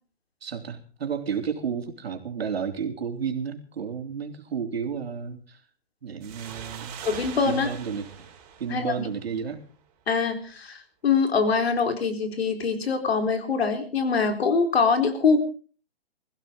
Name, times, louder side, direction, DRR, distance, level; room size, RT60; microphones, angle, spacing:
voice 1, 0.4-5.6 6.0-7.0 7.4-8.3 8.6-9.6, right 7 dB, 75° right, 5 dB, 3.4 m, -32 dB
sound 1, 6.2-9.6, right 8 dB, 25° right, 4.5 m, -42 dB
voice 2, 7.0-7.7 8.7-9.1 10.1-15.4, left 5 dB, 75° left, 7 dB, 4.1 m, -24 dB
21.5 x 15.5 x 3.8 m, 0.39 s
hypercardioid pair, 155°, 31 cm